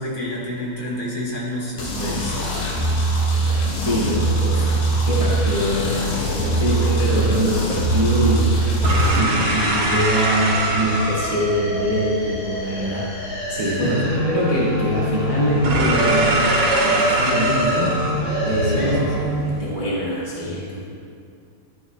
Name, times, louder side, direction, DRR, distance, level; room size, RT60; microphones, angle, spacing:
voice 1, 0.0-2.5 13.6-14.1 18.6-19.4, equal, 45° left, -5 dB, 2.5 m, -29 dB
sound 1, 1.8-9.2, right 2 dB, 85° left, 3.2 m, -21 dB
sound 2, 3.5-19.6, right 1 dB, 85° right, 3.4 m, -25 dB
voice 2, 3.8-4.7 5.0-8.6 9.1-19.1 19.6-20.8, equal, 40° right, -7 dB, 0.5 m, -24 dB
sound 3, 10.4-19.2, equal, 70° left, 4.0 m, -26 dB
12.5 x 11.0 x 2.2 m, 2.4 s
omnidirectional pair, 3.6 m